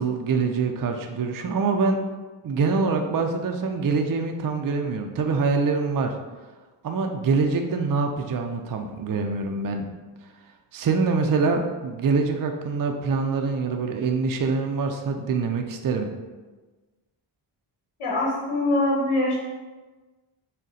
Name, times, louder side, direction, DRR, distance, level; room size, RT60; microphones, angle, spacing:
voice 1, 0.0-2.0 2.4-6.1 6.8-9.9 10.7-16.1, right 4 dB, 45° right, 4 dB, 0.4 m, -25 dB
voice 2, 18.0-19.4, left 2 dB, 85° left, -4 dB, 1.2 m, -23 dB
6.2 x 2.1 x 4.0 m, 1.3 s
wide cardioid pair, 135°, 49 cm